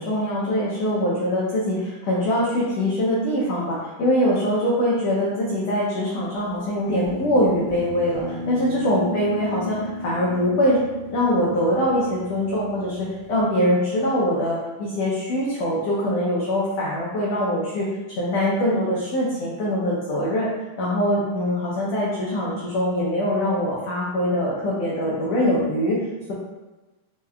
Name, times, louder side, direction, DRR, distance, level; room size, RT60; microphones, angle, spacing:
voice 1, 0.0-10.8 11.1-17.9 18.2-20.5 20.8-26.0, equal, 85° left, -6 dB, 1.4 m, -23 dB
Guitar, 6.9-13.4, left 1 dB, 85° right, 1.3 m, -35 dB
5.8 x 2.3 x 2.2 m, 1.1 s
omnidirectional pair, 3.8 m